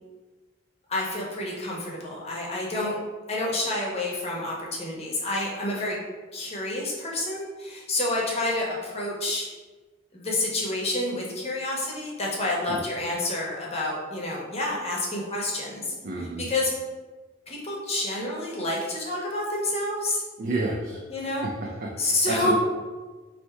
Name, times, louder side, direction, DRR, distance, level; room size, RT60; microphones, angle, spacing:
voice 1, 0.9-3.0 3.3-6.0 6.3-9.5 10.1-15.9 16.4-16.7 17.5-20.2 21.1-21.5 22.0-22.5, left 2 dB, 30° left, -3 dB, 0.9 m, -28 dB
voice 2, 16.0-16.5 20.4-21.0 21.4-21.5 21.8-22.5, right 2 dB, 45° right, -2 dB, 0.5 m, -30 dB
3.3 x 2.7 x 4.5 m, 1.3 s
head